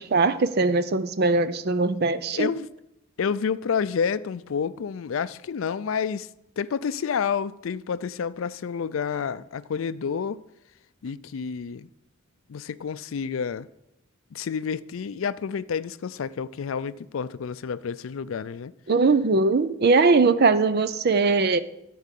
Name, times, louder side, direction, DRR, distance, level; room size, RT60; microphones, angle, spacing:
voice 1, 0.0-2.5 18.9-21.6, right 3 dB, 55° right, 0.6 m, -21 dB
voice 2, 2.3-2.7 3.2-6.3 6.6-10.4 11.0-11.9 12.5-13.7 14.3-18.7, left 6 dB, 80° left, 0.4 m, -29 dB
12.5 x 4.7 x 8.3 m
head